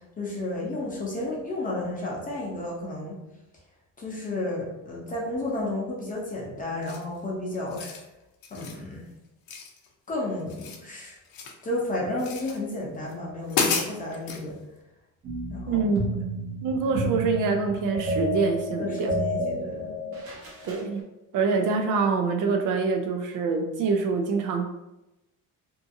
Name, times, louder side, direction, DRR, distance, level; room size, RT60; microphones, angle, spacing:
voice 1, 0.2-3.2 4.0-8.0 8.5-9.0 10.1-11.2 11.6-14.6 15.5-15.8 18.8-20.0, left 2 dB, 25° left, -3 dB, 0.7 m, -32 dB
sound 1, 6.8-7.2 7.6-8.0 8.4-8.8 9.5-10.1 10.4-11.6 12.2-12.6 13.1-13.2 13.5-14.4, left 5 dB, 85° left, 0.5 m, -31 dB
sound 2, 15.2-20.9, equal, 40° right, 0.8 m, -31 dB
voice 2, 15.7-16.1 16.6-19.1 20.6-21.0 21.3-24.7, right 4 dB, 65° right, 4 dB, 0.5 m, -25 dB
2.7 x 2.5 x 2.5 m, 0.95 s
cardioid pair, 145°, 34 cm